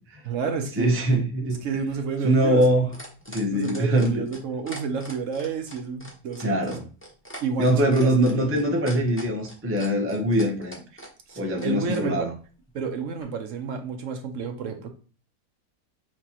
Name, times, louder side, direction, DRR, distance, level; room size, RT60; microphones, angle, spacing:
voice 1, 0.2-0.9 1.6-2.6 3.5-6.8 7.4-8.1 11.3-12.3 12.7-14.9, right 5 dB, 65° right, 0.9 m, -30 dB
voice 2, 0.8-1.6 2.2-2.9 3.3-4.3 6.4-6.8 7.6-10.8 11.4-12.3, right 1 dB, 15° right, 0.4 m, -22 dB
sound 1, 1.5-12.0 13.2-13.3, equal, 10° left, 0.9 m, -42 dB
6.0 x 2.8 x 2.9 m
omnidirectional pair, 1.6 m